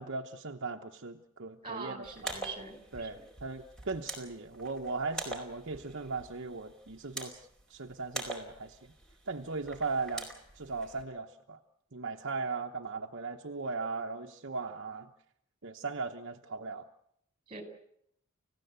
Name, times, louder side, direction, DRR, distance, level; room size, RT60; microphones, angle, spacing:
voice 1, 0.0-2.3 2.9-8.8 9.3-10.3 10.5-11.6 11.9-15.1 15.6-16.9, right 4 dB, 60° right, 3 dB, 1.1 m, -38 dB
voice 2, 1.6-3.1 17.5-17.6, right 4 dB, 25° right, 7 dB, 4.7 m, -42 dB
sound 1, 2.0-11.0, right 2 dB, 5° left, 4.6 m, -45 dB
29.5 x 16.0 x 8.2 m, 0.74 s
head